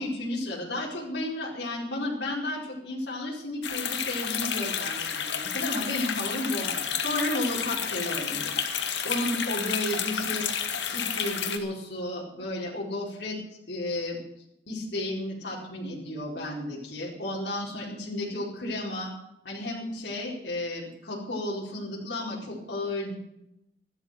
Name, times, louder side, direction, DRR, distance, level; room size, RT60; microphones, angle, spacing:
voice 1, 0.0-10.5 10.9-13.4 13.7-14.2 14.7-19.1 19.4-23.1, left 1 dB, 75° left, -5 dB, 4.6 m, -33 dB
sound 1, 3.6-11.6, left 7 dB, 90° left, 2.0 m, -30 dB
14.0 x 12.5 x 6.8 m, 0.82 s
head